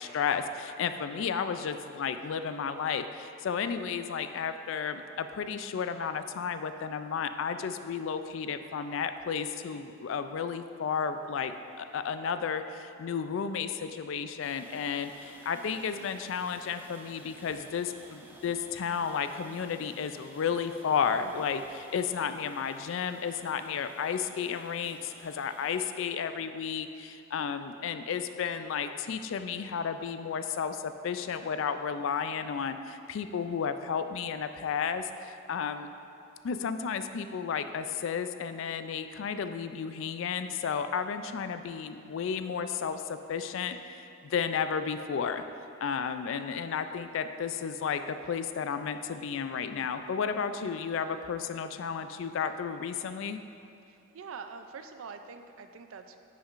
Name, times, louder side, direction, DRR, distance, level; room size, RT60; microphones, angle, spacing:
voice 1, 0.0-35.9 36.4-45.4 45.8-53.4, left 6 dB, 65° left, 10 dB, 0.3 m, -33 dB
sound 1, 14.4-25.9, right 1 dB, 10° right, 0.4 m, -54 dB
voice 2, 53.9-56.2, right 5 dB, 75° right, 8 dB, 0.4 m, -45 dB
9.7 x 5.8 x 2.5 m, 2.5 s
head